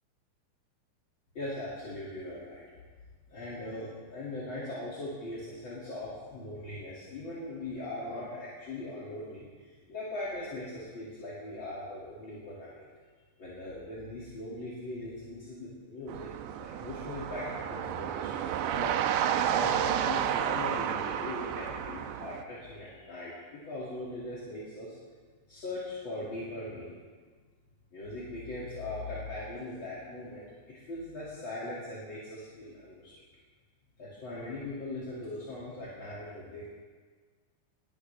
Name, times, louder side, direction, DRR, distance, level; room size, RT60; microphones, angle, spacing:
voice 1, 1.3-2.6 3.3-12.9 13.4-16.3 16.6-19.1 19.4-24.9 25.5-27.0 27.9-33.1 34.0-36.7, left 2 dB, 30° left, -7 dB, 2.7 m, -40 dB
sound 1, 16.1-22.4, right 9 dB, 85° right, 2.9 m, -31 dB
21.0 x 14.5 x 3.5 m, 1.5 s
omnidirectional pair, 5.1 m